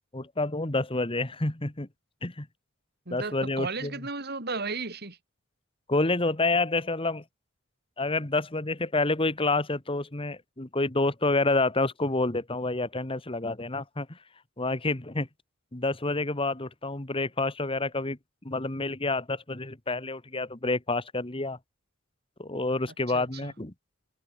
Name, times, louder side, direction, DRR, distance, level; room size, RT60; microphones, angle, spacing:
voice 1, 0.1-1.9 2.2-2.5 3.1-3.9 5.9-7.2 8.0-14.2 14.6-15.3 15.7-21.6 22.4-23.7, left 2 dB, 25° left, 1.7 m, -28 dB
voice 2, 3.1-5.2 23.1-23.5, right 3 dB, 50° right, 4.2 m, -34 dB
head